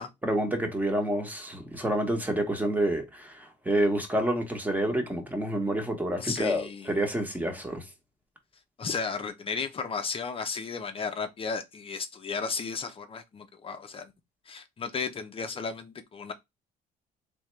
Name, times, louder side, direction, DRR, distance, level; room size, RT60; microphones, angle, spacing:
voice 1, 0.2-7.9, right 1 dB, 10° right, 1.3 m, -28 dB
voice 2, 6.2-6.9 8.8-14.1 14.5-16.3, left 5 dB, 35° left, 0.7 m, -34 dB
3.5 x 3.4 x 3.2 m
cardioid pair, 110°, 17 cm